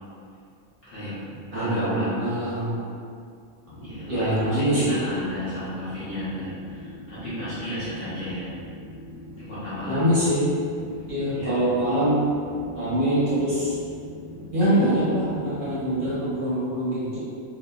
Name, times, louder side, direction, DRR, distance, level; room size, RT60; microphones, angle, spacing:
voice 1, 0.9-1.2 1.5-2.3 3.7-8.5 9.4-10.1 11.3-11.5 14.6-14.8, equal, 60° left, -14 dB, 1.0 m, -32 dB
voice 2, 1.5-2.8 4.1-5.0 9.8-10.5 11.1-12.2 12.7-13.8 14.5-17.2, equal, 45° right, -11 dB, 0.8 m, -24 dB
sound 1, 3.7-16.2, left 1 dB, 90° left, 1.1 m, -42 dB
2.8 x 2.2 x 2.2 m, 2.4 s
omnidirectional pair, 1.5 m